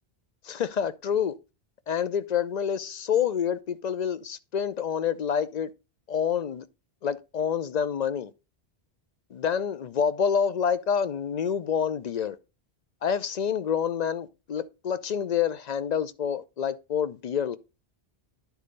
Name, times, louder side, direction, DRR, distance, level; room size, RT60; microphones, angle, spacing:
voice 1, 0.5-1.3 1.9-5.7 6.1-6.6 7.0-8.3 9.3-12.4 13.0-17.6, left 7 dB, 55° left, 0.5 m, -27 dB
10.5 x 4.2 x 5.2 m
omnidirectional pair, 1.1 m